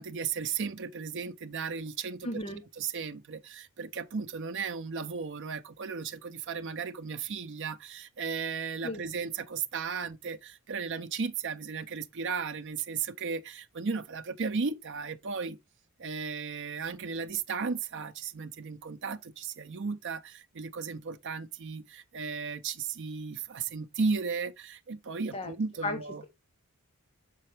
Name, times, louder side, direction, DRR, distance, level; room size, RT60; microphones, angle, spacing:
voice 1, 0.0-2.4 2.8-15.6 16.0-26.2, right 5 dB, 55° right, 0.6 m, -35 dB
voice 2, 2.2-2.6 8.8-9.0 25.3-25.5 25.8-26.3, left 2 dB, 25° left, 0.8 m, -34 dB
6.6 x 5.4 x 3.3 m
head